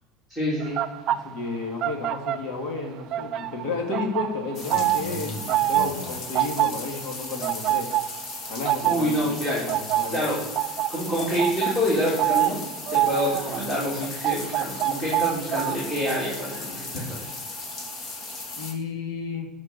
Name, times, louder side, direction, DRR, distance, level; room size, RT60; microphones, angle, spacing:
voice 1, 0.3-0.8 8.9-9.6 10.1-10.4 10.9-12.6 12.9-17.3, equal, 15° left, -8 dB, 3.1 m, -27 dB
sound 1, 0.6-2.8 3.1-18.0 18.2-18.5, right 14 dB, 40° right, 0.4 m, -27 dB
voice 2, 1.1-7.9 8.5-10.2 18.6-19.5, left 3 dB, 60° left, 1 dB, 2.6 m, -32 dB
sound 2, 4.5-18.7, left 3 dB, 35° left, 1.4 m, -37 dB
12.5 x 5.3 x 6.8 m, 1.1 s
cardioid pair, 160°, 0 cm